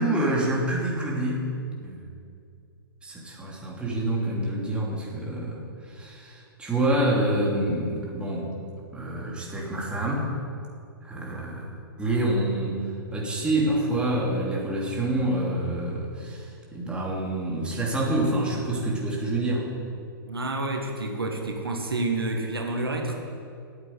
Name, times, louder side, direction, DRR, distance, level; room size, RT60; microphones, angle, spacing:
voice 1, 0.0-1.5 1.8-2.0 3.0-5.6 5.9-8.5 8.9-10.3 11.0-11.7 12.0-19.7, right 1 dB, 10° right, -4 dB, 2.9 m, -27 dB
voice 2, 20.2-23.1, right 2 dB, 85° right, 2 dB, 1.7 m, -29 dB
9.1 x 8.1 x 9.5 m, 2.3 s
figure-of-eight pair, 115°, 12 cm